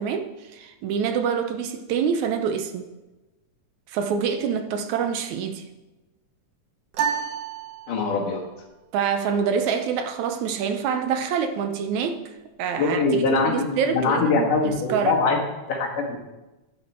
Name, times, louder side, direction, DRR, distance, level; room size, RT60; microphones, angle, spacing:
voice 1, 0.0-2.9 3.9-5.7 8.9-12.2 12.6-15.2, right 6 dB, 75° right, 2.0 m, -26 dB
sound 1, 6.9-8.4, right 7 dB, 60° right, 1.9 m, -29 dB
voice 2, 7.9-8.4 12.8-15.4 15.7-16.3, left 3 dB, 85° left, 3.5 m, -23 dB
11.5 x 10.5 x 4.4 m
omnidirectional pair, 3.6 m